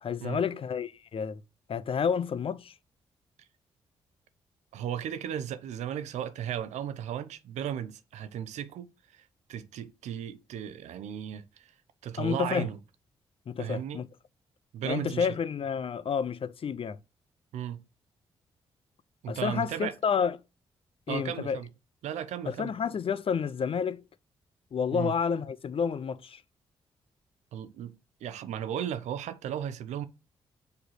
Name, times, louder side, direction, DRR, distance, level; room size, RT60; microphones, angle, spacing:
voice 1, 0.0-1.4 1.7-2.7 12.2-12.7 13.5-14.1 14.8-17.0 19.3-20.4 21.1-21.6 22.5-24.0 24.7-26.4, left 6 dB, 50° left, 0.6 m, -30 dB
voice 2, 4.7-11.7 12.0-12.8 13.6-14.0 14.7-15.4 17.5-17.9 19.2-19.9 21.1-21.7 22.0-22.7 24.9-25.2 27.5-30.0, right 10 dB, 80° right, 0.7 m, -35 dB
4.9 x 4.7 x 4.5 m
supercardioid pair, 45°, 12 cm